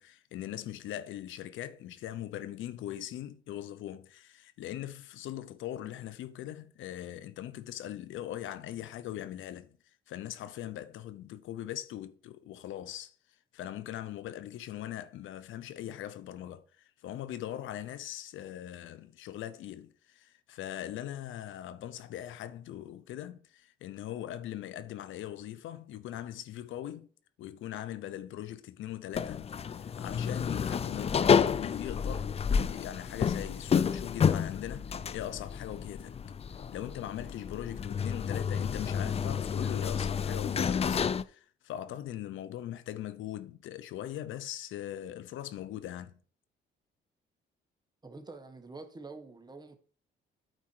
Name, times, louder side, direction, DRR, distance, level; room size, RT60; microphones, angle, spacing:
voice 1, 0.0-9.8 10.1-13.1 13.5-27.1 27.4-32.3 32.7-36.2 36.7-46.1, left 12 dB, 80° left, 0.7 m, -41 dB
sound 1, 29.1-41.2, left 7 dB, 30° left, 0.4 m, -30 dB
voice 2, 48.0-49.8, right 3 dB, 20° right, 1.4 m, -46 dB
9.2 x 4.3 x 4.6 m
cardioid pair, 90°, 20 cm